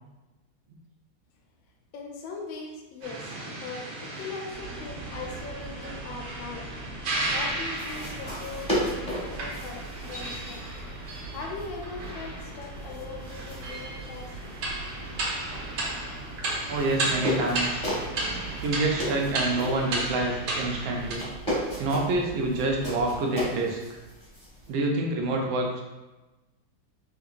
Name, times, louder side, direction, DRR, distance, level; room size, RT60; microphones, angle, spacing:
voice 1, 1.9-6.7 7.3-10.6 11.3-14.3 14.7-14.9, left 4 dB, 80° left, 0 dB, 1.4 m, -40 dB
sound 1, 3.0-21.1, right 2 dB, 65° right, 0.9 m, -34 dB
sound 2, 4.5-23.2, right 3 dB, 65° left, 1.2 m, -43 dB
sound 3, 7.7-24.7, equal, 5° left, 0.8 m, -36 dB
voice 2, 16.7-17.8 18.6-21.2 21.8-23.8 24.7-25.8, right 2 dB, 80° right, 1 dB, 1.4 m, -27 dB
3.8 x 2.9 x 2.4 m, 1.1 s
omnidirectional pair, 2.1 m